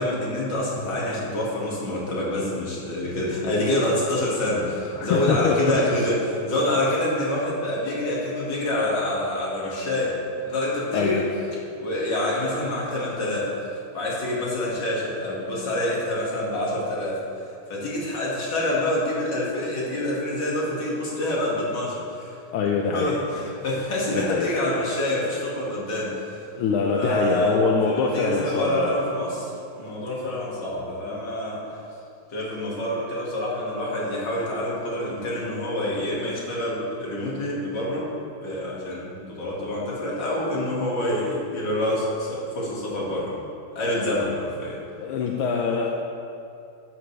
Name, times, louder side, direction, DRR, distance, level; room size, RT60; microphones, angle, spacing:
voice 1, 0.0-10.2 10.5-11.3 11.8-13.5 13.9-17.2 17.7-22.3 22.9-26.4 26.9-27.6 27.9-31.6 32.3-38.1 38.4-43.3 43.7-44.8, left 1 dB, 55° left, -5 dB, 2.7 m, -26 dB
voice 2, 4.9-5.8 10.9-11.3 22.5-23.1 24.1-24.5 26.6-28.9 45.0-45.9, left 5 dB, 85° left, 0 dB, 1.6 m, -24 dB
12.5 x 9.4 x 3.3 m, 2.6 s
omnidirectional pair, 2.3 m